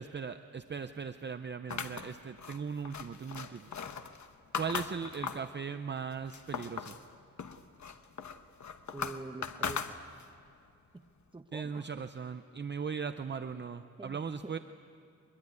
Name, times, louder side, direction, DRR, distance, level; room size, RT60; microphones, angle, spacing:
voice 1, 0.0-3.7 4.6-6.9 11.5-14.6, right 6 dB, 35° right, 9 dB, 0.6 m, -38 dB
sound 1, 1.7-5.5 6.0-7.0 7.4-10.4, left 6 dB, 65° left, 1.1 m, -39 dB
voice 2, 8.9-10.0 10.9-11.0 11.3-11.9 14.0-14.6, right 2 dB, 15° right, 8 dB, 1.0 m, -45 dB
23.5 x 22.0 x 9.6 m, 2.5 s
wide cardioid pair, 145°, 31 cm